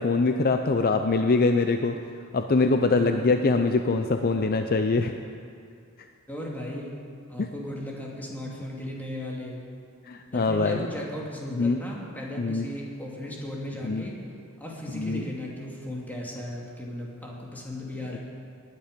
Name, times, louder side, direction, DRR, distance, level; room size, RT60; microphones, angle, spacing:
voice 1, 0.0-2.0 2.3-5.1 7.4-7.5 10.1-10.8 11.5-11.8 12.4-12.7 13.8-14.0 14.9-15.2 18.1-18.2, left 3 dB, 45° left, 6 dB, 0.5 m, -23 dB
voice 2, 2.9-3.3 6.3-7.0 7.3-9.6 10.3-14.2 14.6-18.2, left 1 dB, 10° left, -3 dB, 2.3 m, -36 dB
19.5 x 9.9 x 5.2 m, 2.3 s
head